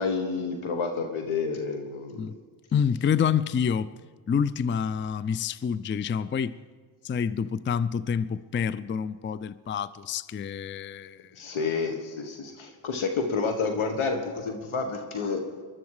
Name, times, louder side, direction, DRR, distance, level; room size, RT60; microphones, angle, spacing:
voice 1, 0.0-2.3 11.4-15.4, left 4 dB, 70° left, 1.5 m, -29 dB
voice 2, 2.7-3.9 4.3-6.6 7.0-11.3, left 7 dB, 25° left, 0.4 m, -27 dB
20.0 x 12.0 x 4.8 m
supercardioid pair, 50°, 50 cm